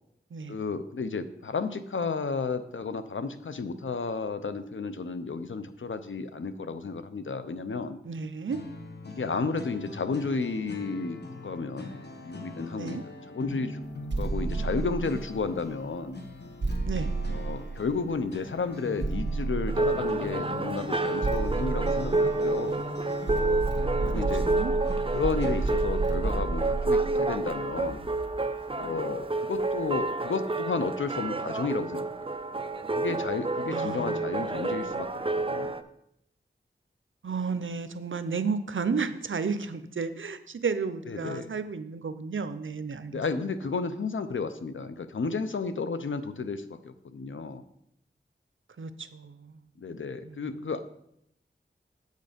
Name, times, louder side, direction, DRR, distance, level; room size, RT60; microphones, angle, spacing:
voice 1, 0.5-8.0 9.1-11.9 12.2-13.8 14.2-16.2 17.3-22.8 24.0-24.5 25.1-28.0 28.8-32.0 32.9-35.8 41.1-41.5 43.1-47.6 49.8-50.8, left 4 dB, 85° left, 11 dB, 0.6 m, -32 dB
voice 2, 8.0-8.6 12.8-13.0 16.9-17.1 24.1-24.8 33.7-34.3 37.2-43.5 48.8-49.6 50.2-50.7, right 5 dB, 85° right, 11 dB, 0.6 m, -33 dB
sound 1, 8.5-25.9, left 2 dB, 60° left, 1.3 m, -41 dB
sound 2, 14.1-15.6 16.6-18.2 19.0-20.4 21.2-22.8 23.3-28.5, right 3 dB, 65° right, 1.2 m, -31 dB
sound 3, 19.7-35.8, right 2 dB, 25° right, 0.6 m, -29 dB
8.3 x 6.5 x 5.1 m, 0.76 s
wide cardioid pair, 40°, 20 cm